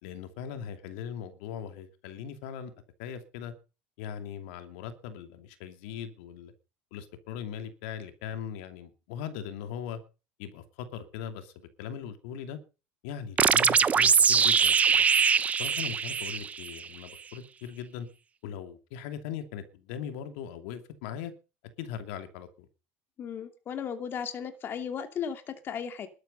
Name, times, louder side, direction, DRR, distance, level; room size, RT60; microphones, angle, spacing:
voice 1, 0.0-2.7 3.0-3.5 4.0-6.5 6.9-10.0 10.4-12.6 13.0-15.1 15.6-18.1 18.4-21.3 21.8-22.7, left 8 dB, 80° left, 9 dB, 2.7 m, -40 dB
sound 1, 13.4-16.9, right 6 dB, 25° right, 0.8 m, -23 dB
voice 2, 23.2-26.1, left 7 dB, 40° left, 8 dB, 2.7 m, -35 dB
13.5 x 12.5 x 5.4 m, 0.33 s
supercardioid pair, 125°, 6 cm